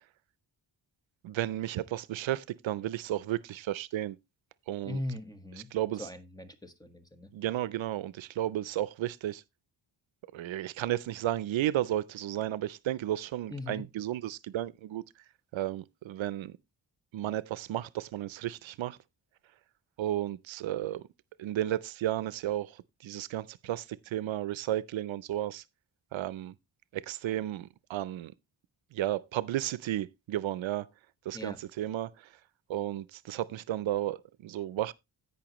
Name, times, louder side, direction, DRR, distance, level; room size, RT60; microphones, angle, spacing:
voice 1, 1.2-4.2 4.7-5.0 5.7-6.1 7.3-9.4 10.3-15.0 15.5-16.6 17.1-19.0 20.0-21.0 21.4-25.6 26.1-26.5 26.9-28.3 28.9-30.9 31.3-32.3 32.7-34.9, right 13 dB, 85° right, 0.6 m, -33 dB
voice 2, 4.8-5.7 6.0-7.3 13.5-13.9 31.3-31.6, left 1 dB, 10° left, 1.3 m, -39 dB
16.5 x 5.6 x 3.0 m
wide cardioid pair, 105°, 45 cm